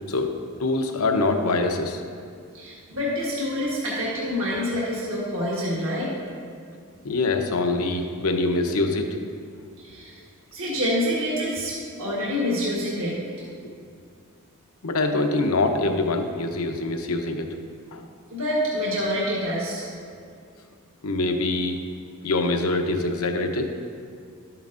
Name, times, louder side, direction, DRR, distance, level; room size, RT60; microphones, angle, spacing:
voice 1, 0.6-2.0 7.0-9.1 14.8-17.5 17.9-18.0 21.0-21.8 22.2-23.7, left 2 dB, 75° left, 4 dB, 0.8 m, -24 dB
voice 2, 2.5-6.1 9.8-10.2 10.5-13.2 18.3-19.8, equal, 65° right, -6 dB, 1.5 m, -27 dB
11.5 x 9.0 x 2.5 m, 2.2 s
head